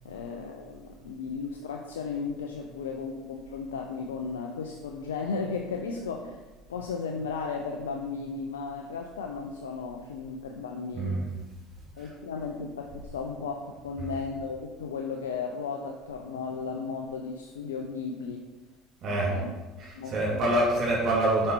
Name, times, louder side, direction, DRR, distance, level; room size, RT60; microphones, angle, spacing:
voice 1, 0.0-6.4 6.7-11.2 12.0-18.4 19.0-19.5 19.9-20.4, left 5 dB, 90° left, 2 dB, 0.6 m, -35 dB
voice 2, 10.9-11.3 12.0-12.1 14.0-14.1 19.0-19.3 19.8-21.5, right 1 dB, 50° right, -5 dB, 2.3 m, -26 dB
7.3 x 5.4 x 4.4 m, 1.2 s
hypercardioid pair, 75°, 0 cm